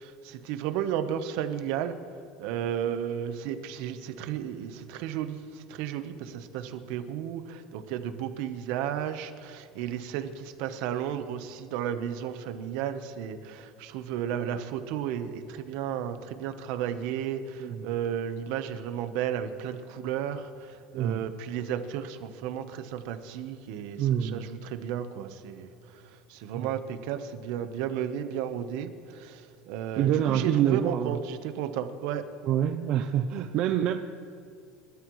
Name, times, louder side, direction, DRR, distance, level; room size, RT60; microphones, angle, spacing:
voice 1, 0.0-1.9 2.4-32.3, right 9 dB, 55° right, 9 dB, 1.0 m, -33 dB
voice 2, 20.9-21.2 24.0-24.5 26.5-26.7 30.0-31.2 32.4-33.9, right 10 dB, 40° right, 6 dB, 0.5 m, -26 dB
29.0 x 13.0 x 3.2 m, 2.3 s
cardioid pair, 175°, 2 cm